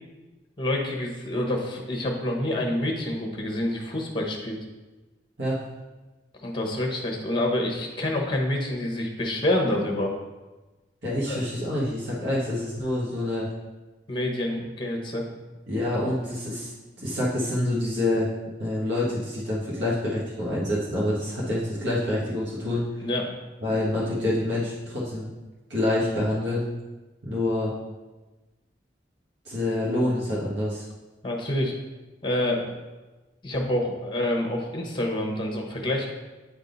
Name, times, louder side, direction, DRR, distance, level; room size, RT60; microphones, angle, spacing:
voice 1, 0.6-4.6 6.4-10.1 11.3-11.4 14.1-15.2 23.0-23.3 31.2-31.7 32.2-32.7 33.4-36.1, left 1 dB, 25° left, 1 dB, 1.0 m, -27 dB
voice 2, 11.0-13.5 15.7-16.7 17.0-18.3 18.6-22.8 23.6-25.3 25.7-26.7 27.2-27.7 29.4-30.8, left 1 dB, 75° right, -7 dB, 1.5 m, -27 dB
8.6 x 3.6 x 4.0 m, 1.2 s
head